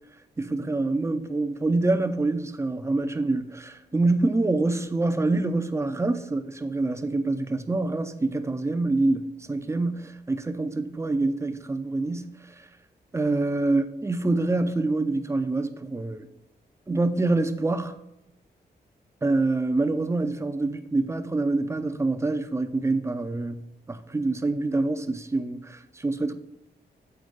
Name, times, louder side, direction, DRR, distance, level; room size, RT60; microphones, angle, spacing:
voice 1, 0.4-12.7 13.1-16.3 16.9-18.0 19.2-23.6 23.9-26.3, right 2 dB, 15° right, 0.6 m, -26 dB
8.0 x 4.3 x 5.2 m
wide cardioid pair, 120°, 18 cm